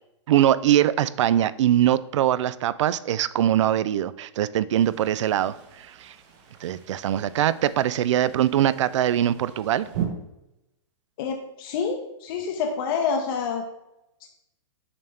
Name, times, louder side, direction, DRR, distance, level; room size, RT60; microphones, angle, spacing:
voice 1, 0.3-6.1 6.6-9.9, right 11 dB, 70° right, 17 dB, 0.4 m, -22 dB
sound 1, 4.7-10.1, right 10 dB, 35° right, 1.0 m, -39 dB
voice 2, 11.2-13.6, left 5 dB, 45° left, 2 dB, 0.7 m, -27 dB
7.1 x 4.3 x 3.3 m, 0.89 s
hypercardioid pair, 150°, 16 cm